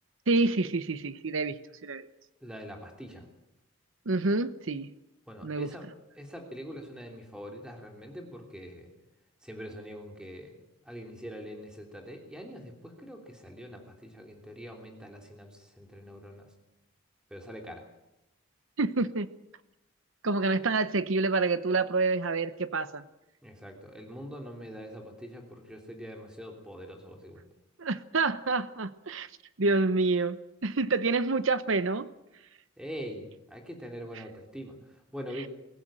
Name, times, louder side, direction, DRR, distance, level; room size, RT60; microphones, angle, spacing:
voice 1, 0.3-2.1 4.1-4.9 5.4-5.7 18.8-19.3 20.2-23.0 27.8-29.3 29.6-32.1, right 3 dB, 70° right, 13 dB, 0.9 m, -27 dB
voice 2, 2.4-3.2 5.3-5.9 6.2-8.9 9.4-10.6 10.8-16.5 17.3-17.8 23.4-27.5 32.8-35.5, equal, 5° right, 1 dB, 3.2 m, -43 dB
23.0 x 15.5 x 8.9 m, 0.94 s
head